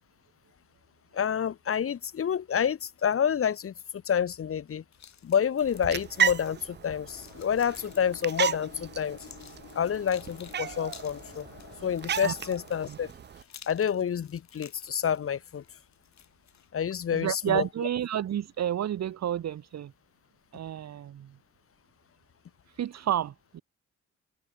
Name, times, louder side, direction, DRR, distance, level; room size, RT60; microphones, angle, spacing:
voice 1, 1.1-3.7 4.1-4.8 5.2-9.2 9.7-11.5 11.8-13.1 13.7-15.6 16.7-17.6, left 8 dB, 50° left, 0.9 m, -28 dB
sound 1, 4.9-16.7, left 8 dB, 65° left, 5.4 m, -54 dB
sound 2, 5.6-13.4, right 8 dB, 35° right, 0.5 m, -34 dB
sound 3, 7.1-12.9, left 11 dB, 80° left, 3.3 m, -50 dB
voice 2, 17.1-19.9 20.5-21.3 22.7-23.6, right 10 dB, 60° right, 0.9 m, -30 dB
cardioid pair, 100°, 30 cm